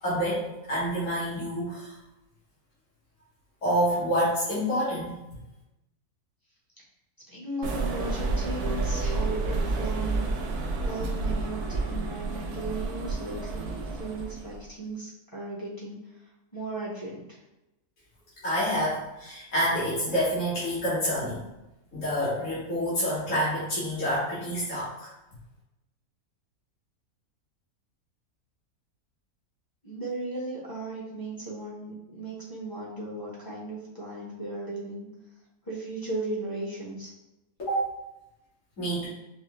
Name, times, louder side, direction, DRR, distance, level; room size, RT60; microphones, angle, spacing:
voice 1, 0.0-1.9 3.6-5.2 18.4-21.4 21.9-25.1 37.6-37.8 38.8-39.1, equal, 55° left, -10 dB, 2.0 m, -28 dB
voice 2, 7.3-10.2 10.8-16.0 16.5-17.4 29.8-35.1 35.6-37.1, right 2 dB, 20° left, -7 dB, 0.8 m, -36 dB
sound 1, 7.6-14.6, right 3 dB, 85° right, 1.1 m, -30 dB
5.2 x 2.1 x 3.0 m, 0.96 s
omnidirectional pair, 1.6 m